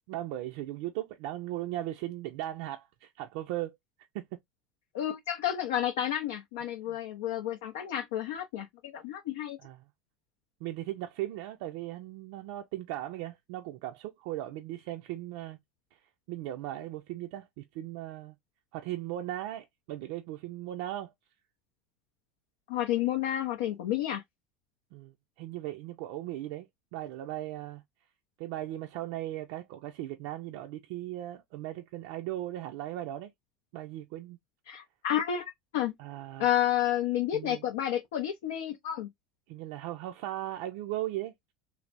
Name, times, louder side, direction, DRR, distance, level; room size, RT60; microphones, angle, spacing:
voice 1, 0.1-3.8 4.1-4.3 6.8-7.0 9.6-9.8 10.6-15.6 15.9-16.0 16.3-18.4 18.7-21.1 24.9-27.8 28.4-33.3 33.7-34.4 36.0-36.6 37.3-37.6 39.5-41.5, right 14 dB, 70° right, 0.3 m, -38 dB
voice 2, 4.9-9.6 22.7-24.2 34.7-35.9 36.4-39.1, left 11 dB, 80° left, 0.5 m, -30 dB
3.2 x 2.0 x 2.5 m
supercardioid pair, 105°, 0 cm